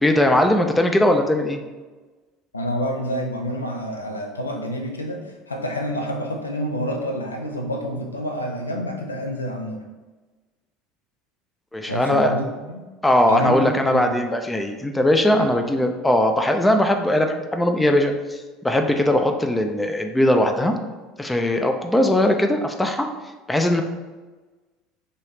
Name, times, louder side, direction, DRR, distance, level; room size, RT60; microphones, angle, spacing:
voice 1, 0.0-1.6 11.7-12.3 13.0-20.7 21.2-23.1 23.5-23.8, left 1 dB, 10° left, 5 dB, 0.3 m, -20 dB
voice 2, 2.5-9.8 11.9-12.9 13.3-14.2 15.4-15.5, equal, 85° left, 2 dB, 0.4 m, -28 dB
3.1 x 2.7 x 3.1 m, 1.2 s
figure-of-eight pair, 70°, 0 cm